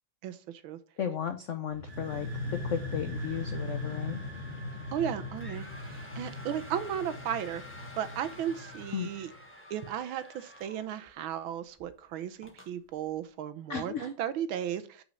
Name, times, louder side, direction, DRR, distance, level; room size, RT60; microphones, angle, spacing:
voice 1, 0.2-0.8 4.9-9.3 9.7-15.0, right 9 dB, 80° right, 12 dB, 1.6 m, -35 dB
voice 2, 1.0-2.3 2.6-4.2 8.9-9.1 13.7-14.1, left 8 dB, 85° left, 8 dB, 0.6 m, -34 dB
sound 1, 1.7-9.4, left 2 dB, 35° right, 2.0 m, -39 dB
sound 2, 3.1-11.4 11.8-11.9 12.4-12.7, left 1 dB, 5° left, 1.2 m, -50 dB
6.0 x 5.5 x 6.3 m, 0.38 s
omnidirectional pair, 2.2 m